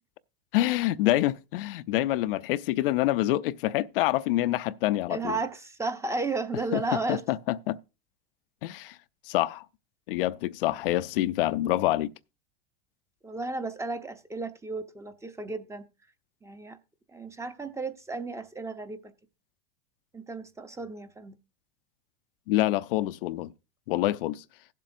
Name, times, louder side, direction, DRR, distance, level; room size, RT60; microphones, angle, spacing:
voice 1, 0.5-5.4 6.7-7.8 8.6-9.0 9.2-9.6 10.1-12.1 22.5-23.5 23.9-24.4, left 15 dB, 70° left, 0.5 m, -26 dB
voice 2, 5.1-7.2 13.2-15.8 16.4-16.8 17.1-19.1 20.1-21.3, right 3 dB, 10° right, 0.7 m, -33 dB
17.0 x 7.5 x 2.6 m
supercardioid pair, 120°, 29 cm